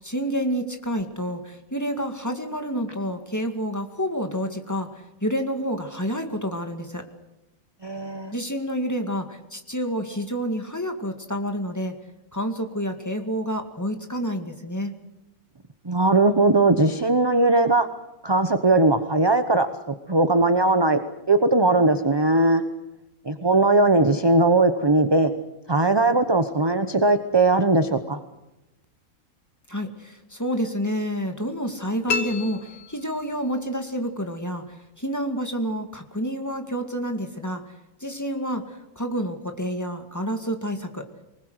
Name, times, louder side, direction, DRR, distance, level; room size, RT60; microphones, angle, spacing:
voice 1, 0.0-7.0 8.3-11.9 12.3-14.9 29.7-37.7 38.0-41.0, equal, 10° left, 5 dB, 2.0 m, -29 dB
voice 2, 7.8-8.3 15.8-17.9 18.2-19.7 20.1-21.0 21.3-22.6 23.2-25.3 25.7-28.2, right 2 dB, 20° right, 9 dB, 0.8 m, -19 dB
sound 1, 32.1-33.6, left 4 dB, 70° left, 1.7 m, -31 dB
24.0 x 20.5 x 8.0 m, 0.93 s
omnidirectional pair, 1.6 m